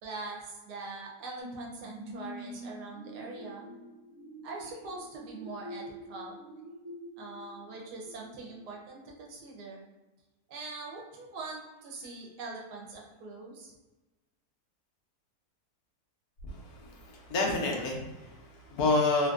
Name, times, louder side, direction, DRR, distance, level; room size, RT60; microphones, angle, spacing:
voice 1, 0.0-3.6 4.4-6.4 7.2-9.8 10.5-13.7, right 3 dB, 85° right, -1 dB, 1.3 m, -43 dB
sound 1, 1.4-8.8 9.3-9.4, equal, 55° right, 1.1 m, -46 dB
voice 2, 16.4-19.3, left 3 dB, 75° left, 0 dB, 1.1 m, -29 dB
3.2 x 2.5 x 2.3 m, 1.1 s
omnidirectional pair, 1.7 m